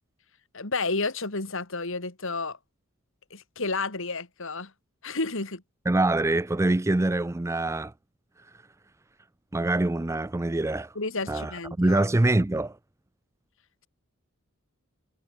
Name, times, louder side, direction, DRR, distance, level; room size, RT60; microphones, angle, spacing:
voice 1, 0.5-2.6 3.3-4.7 5.0-5.6 11.0-12.0, left 3 dB, 60° left, 2.7 m, -31 dB
voice 2, 5.9-7.9 9.5-10.9 11.3-11.5 11.8-12.8, right 2 dB, 15° right, 0.4 m, -24 dB
head